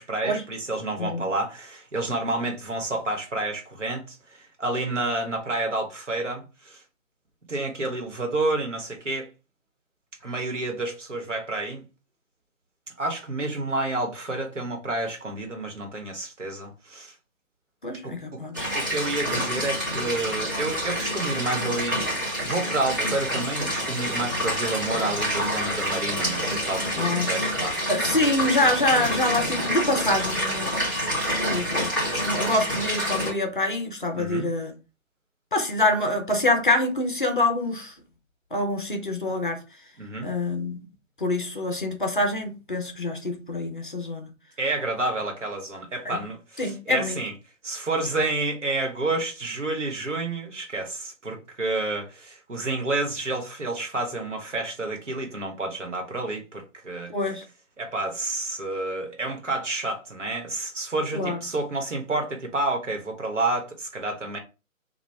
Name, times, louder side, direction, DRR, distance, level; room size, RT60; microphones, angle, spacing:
voice 1, 0.0-6.8 7.5-9.3 10.2-11.8 13.0-17.1 18.0-18.4 18.7-27.7 34.1-34.5 40.0-40.3 44.6-47.3 47.6-57.1 57.8-64.4, right 2 dB, 60° right, 1.2 m, -29 dB
voice 2, 17.8-18.7 27.0-27.3 27.9-31.0 31.5-34.7 35.5-37.9 38.5-39.6 40.2-40.8 41.2-44.3 46.1-46.2 46.6-47.2 57.1-57.4 61.1-61.4, left 2 dB, 40° left, 0.6 m, -26 dB
sound 1, 18.5-33.3, equal, 15° right, 0.8 m, -27 dB
2.9 x 2.3 x 3.3 m
figure-of-eight pair, 145°, 41 cm